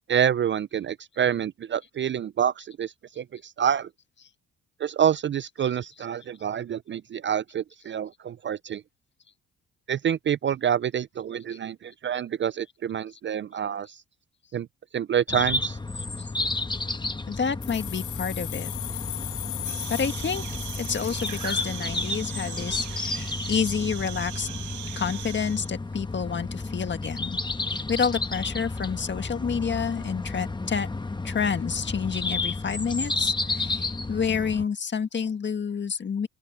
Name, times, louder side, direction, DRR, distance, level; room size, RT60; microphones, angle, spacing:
voice 1, 0.1-3.9 4.8-8.8 9.9-14.0 14.5-14.7 14.9-15.8, right 9 dB, 40° right, 0.4 m, -27 dB
sound 1, 15.3-34.6, left 3 dB, 15° left, 1.2 m, -32 dB
voice 2, 17.3-18.7 19.9-20.4 20.8-24.5 25.0-27.4 27.7-30.9 31.2-36.3, left 6 dB, 40° left, 1.7 m, -29 dB
sound 2, 17.6-22.4, left 13 dB, 75° left, 1.5 m, -38 dB
sound 3, 19.6-25.7, right 12 dB, 75° right, 1.4 m, -39 dB
open air
cardioid pair, 90°, 30 cm